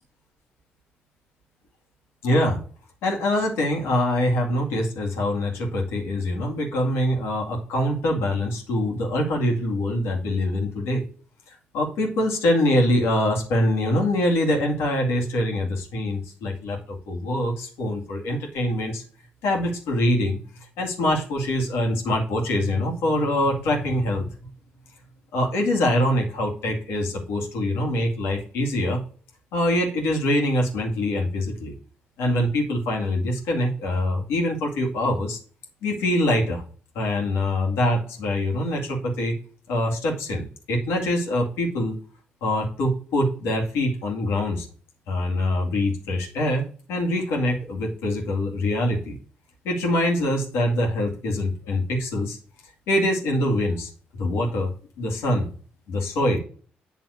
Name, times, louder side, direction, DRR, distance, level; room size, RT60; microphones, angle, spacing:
voice 1, 2.2-2.6 3.0-11.0 11.5-19.0 19.4-24.3 25.3-29.0 29.5-31.7 32.2-35.4 35.8-36.6 36.9-39.3 39.7-42.0 42.4-44.7 45.1-49.2 49.6-52.4 52.9-53.9 54.2-54.7 55.0-55.5 55.9-56.4, left 1 dB, 80° left, 0 dB, 2.1 m, -24 dB
8.6 x 3.4 x 6.3 m, 0.42 s
supercardioid pair, 50°, 4 cm